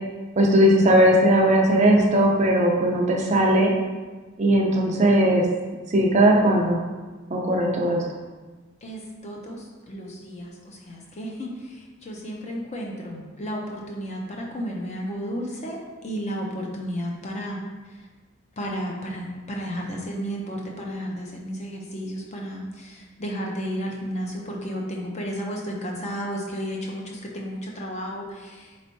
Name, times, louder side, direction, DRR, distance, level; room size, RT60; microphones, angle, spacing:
voice 1, 0.4-3.7 4.4-5.4 5.9-6.8 7.3-8.0, right 1 dB, 35° right, 0 dB, 0.5 m, -18 dB
voice 2, 8.8-17.6 18.6-28.7, equal, 30° left, -1 dB, 0.6 m, -33 dB
4.2 x 3.3 x 2.7 m, 1.3 s
head